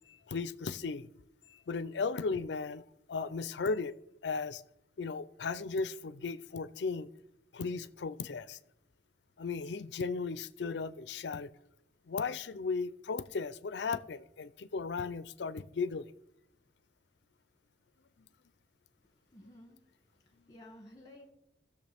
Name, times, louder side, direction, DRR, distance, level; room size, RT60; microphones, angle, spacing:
voice 1, 0.3-1.1 1.7-2.8 3.1-3.9 4.2-4.6 5.0-7.1 7.5-8.6 9.4-11.5 12.1-16.1, left 4 dB, 80° left, 0.5 m, -36 dB
voice 2, 19.0-19.8 20.1-21.3, left 1 dB, 20° left, 2.0 m, -55 dB
17.0 x 6.8 x 3.5 m
head